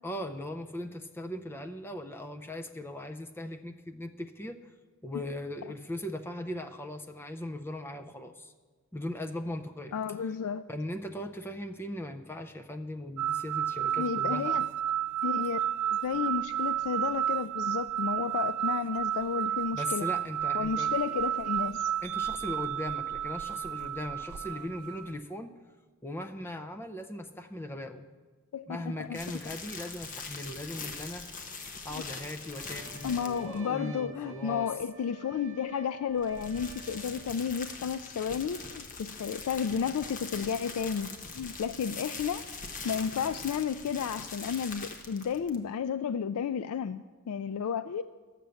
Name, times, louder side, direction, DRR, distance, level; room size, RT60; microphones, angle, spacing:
voice 1, 0.0-4.6 5.0-8.5 8.9-9.9 10.7-14.6 19.7-20.9 22.0-25.5 26.0-28.1 28.7-31.2 31.8-34.7, left 1 dB, 10° left, 7 dB, 0.4 m, -39 dB
voice 2, 9.9-10.6 14.0-14.6 15.2-15.6 15.9-20.1 20.5-21.9 28.5-29.2 33.0-42.4 42.8-48.0, left 7 dB, 75° left, 12 dB, 0.3 m, -32 dB
sound 1, 13.2-25.1, right 10 dB, 80° right, 0.4 m, -31 dB
sound 2, 29.1-33.6 36.1-45.7, left 4 dB, 35° left, 1.0 m, -42 dB
Trumpet, 32.5-37.3, right 6 dB, 55° right, 0.8 m, -51 dB
11.5 x 7.5 x 6.9 m, 1.4 s
head